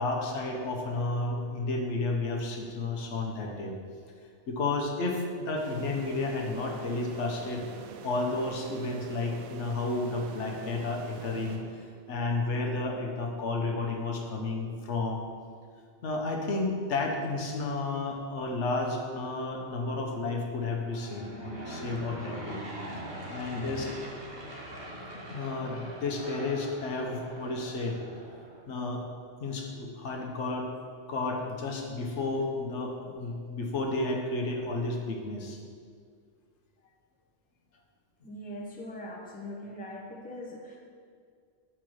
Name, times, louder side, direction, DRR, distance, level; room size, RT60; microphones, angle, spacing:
voice 1, 0.0-3.8 4.5-7.7 8.0-11.6 12.1-15.3 16.0-22.6 23.3-23.9 25.3-28.0 28.7-29.0 29.4-30.7 31.1-35.6, left 3 dB, 75° left, 1 dB, 1.2 m, -32 dB
sound 1, 5.6-12.2, right 6 dB, 80° right, 0.9 m, -46 dB
Aircraft / Engine, 20.7-28.7, right 1 dB, 55° right, 1.3 m, -42 dB
voice 2, 23.2-23.9 38.2-40.8, equal, 10° left, -1 dB, 0.7 m, -42 dB
6.1 x 4.5 x 6.3 m, 2.1 s
omnidirectional pair, 1.2 m